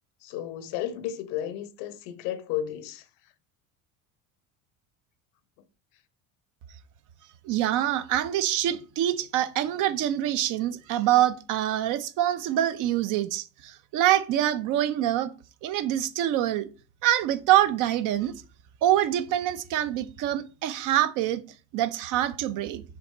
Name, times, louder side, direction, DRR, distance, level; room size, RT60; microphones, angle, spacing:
voice 1, 0.2-3.0, left 11 dB, 85° left, 0.9 m, -33 dB
voice 2, 7.4-15.3 15.6-16.7 17.0-18.3 18.8-21.4 21.7-22.8, right 12 dB, 60° right, 0.7 m, -25 dB
6.9 x 3.4 x 4.2 m
cardioid pair, 150°, 36 cm